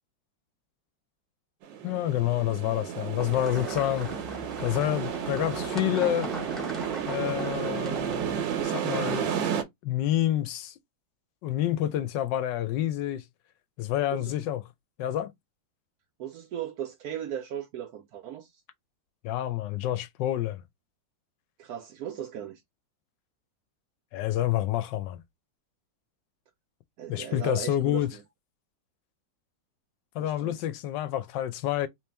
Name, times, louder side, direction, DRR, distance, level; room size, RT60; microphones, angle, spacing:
sound 1, 1.6-9.6, right 8 dB, 90° right, 1.5 m, -32 dB
voice 1, 1.8-4.1 4.6-6.3 7.0-9.3 9.8-10.7 11.4-13.2 13.8-14.6 15.0-15.3 19.2-20.6 24.1-25.2 27.1-28.1 30.1-31.9, left 13 dB, 80° left, 1.2 m, -28 dB
sound 2, 3.2-8.6, equal, ahead, 0.7 m, -40 dB
voice 2, 16.2-18.6 21.6-22.6 27.0-28.2 30.2-30.5, right 10 dB, 75° right, 0.9 m, -37 dB
3.2 x 3.0 x 3.3 m
omnidirectional pair, 2.0 m